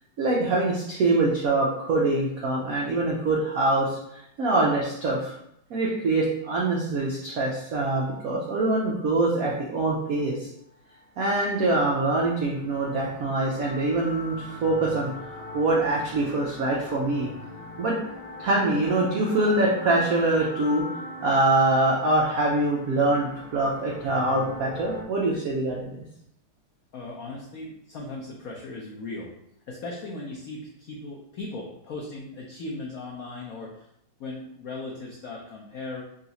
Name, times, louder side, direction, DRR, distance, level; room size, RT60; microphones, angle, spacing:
voice 1, 0.2-5.3 5.7-10.5 11.2-15.1 15.5-17.3 17.8-18.0 18.4-20.8 21.2-26.0, right 2 dB, 90° right, -3 dB, 0.7 m, -24 dB
sound 1, 10.9-25.0, left 2 dB, 35° left, 1.1 m, -41 dB
voice 2, 26.9-29.3 29.7-33.8 34.2-36.0, left 2 dB, 85° left, -2 dB, 0.7 m, -37 dB
3.8 x 2.4 x 4.0 m, 0.76 s
omnidirectional pair, 2.3 m